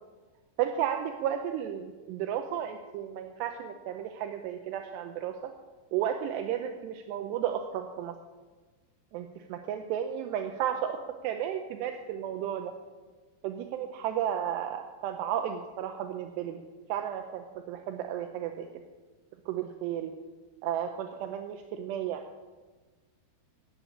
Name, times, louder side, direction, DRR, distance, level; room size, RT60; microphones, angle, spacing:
voice 1, 0.6-5.5 5.9-8.1 9.1-11.0 11.2-12.7 13.4-16.6 16.9-18.7 19.5-20.1 20.6-22.2, right 10 dB, 80° right, 5 dB, 2.7 m, -33 dB
17.0 x 7.5 x 8.5 m, 1.3 s
omnidirectional pair, 5.3 m